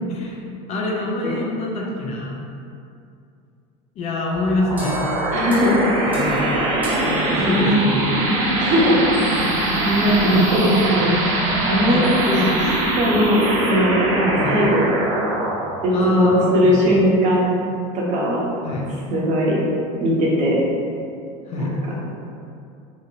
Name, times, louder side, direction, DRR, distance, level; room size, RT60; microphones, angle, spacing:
voice 1, 0.1-0.4 0.7-2.4 4.0-5.0 6.1-6.4 7.1-8.1 11.8-12.5 14.4-14.5 15.9-16.8 18.6-18.9 21.5-21.8, left 2 dB, 40° left, -2 dB, 0.5 m, -25 dB
sound 1, 4.3-17.4, right 1 dB, 85° right, 0.7 m, -23 dB
sound 2, 4.8-8.1, equal, 10° right, 0.6 m, -32 dB
voice 2, 5.3-5.9 7.4-8.2 8.6-9.0 9.8-11.2 11.7-12.1 12.9-14.9 15.8-17.6 17.9-18.4 19.1-19.6 20.0-20.6 21.6-22.0, equal, 45° right, -4 dB, 0.8 m, -19 dB
2.8 x 2.8 x 2.7 m, 2.5 s
supercardioid pair, 130°, 17 cm